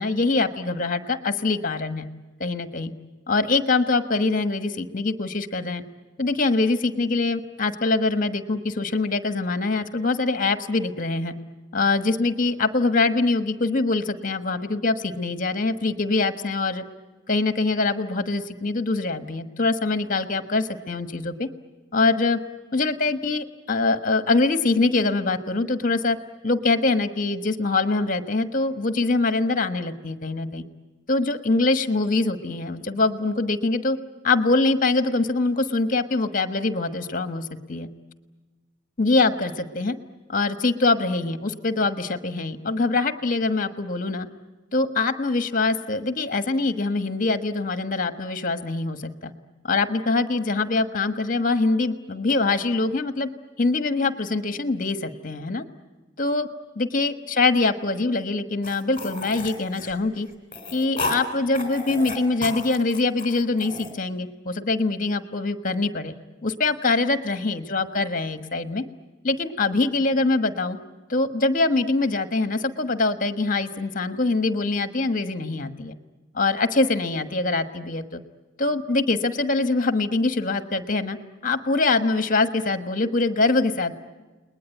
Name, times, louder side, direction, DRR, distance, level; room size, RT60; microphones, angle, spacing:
voice 1, 0.0-2.1 2.4-2.9 3.3-5.8 6.2-11.4 11.7-16.8 17.3-21.5 21.9-22.4 22.7-26.2 26.4-30.6 31.1-34.0 34.2-37.9 39.0-40.0 40.3-44.3 44.7-49.3 49.6-53.3 53.6-55.6 56.2-56.5 56.7-60.3 60.7-66.1 66.4-68.8 69.2-70.8 71.1-75.9 76.3-78.2 78.6-81.2 81.4-83.9, left 3 dB, 45° left, 10 dB, 1.3 m, -23 dB
sound 1, 58.6-61.2 61.5-63.9, left 2 dB, 25° left, 4.0 m, -33 dB
30.0 x 20.5 x 9.2 m, 1.2 s
head